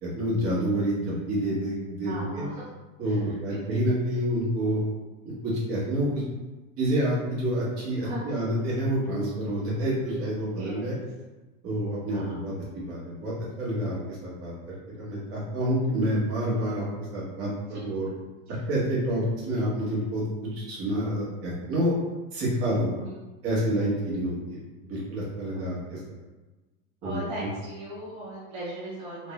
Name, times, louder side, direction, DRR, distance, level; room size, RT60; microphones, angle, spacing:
voice 1, 0.0-2.4 3.0-4.8 5.4-6.2 6.8-10.9 11.6-14.5 14.9-16.9 17.1-17.5 17.8-18.1 18.6-20.2 20.5-21.9 22.3-22.9 23.4-26.0 27.0-27.2, right 1 dB, 35° right, -7 dB, 1.4 m, -28 dB
voice 2, 2.0-2.6 3.0-3.6 8.0-8.5 10.6-10.9 12.1-12.3 16.6-16.7 17.7-17.8 18.5-18.6 23.0-23.3 24.0-24.1 25.5-25.8 27.0-29.3, right 1 dB, 15° right, -9 dB, 0.4 m, -39 dB
3.7 x 2.5 x 3.2 m, 1.2 s
supercardioid pair, 170°, 40 cm